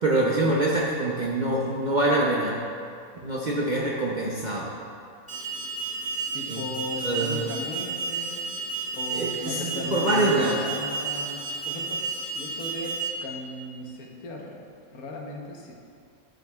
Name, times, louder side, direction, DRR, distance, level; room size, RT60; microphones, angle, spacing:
voice 1, 0.0-2.6 3.2-4.7 6.5-6.6 7.0-7.5 9.1-10.6, right 2 dB, 55° right, -4 dB, 0.5 m, -25 dB
Alarm, 5.3-13.1, right 4 dB, 5° right, 1.3 m, -32 dB
voice 2, 6.3-8.5 8.9-12.1 12.3-14.6 14.9-15.7, left 2 dB, 85° left, 0 dB, 1.4 m, -37 dB
11.0 x 5.0 x 2.3 m, 2.4 s
omnidirectional pair, 1.5 m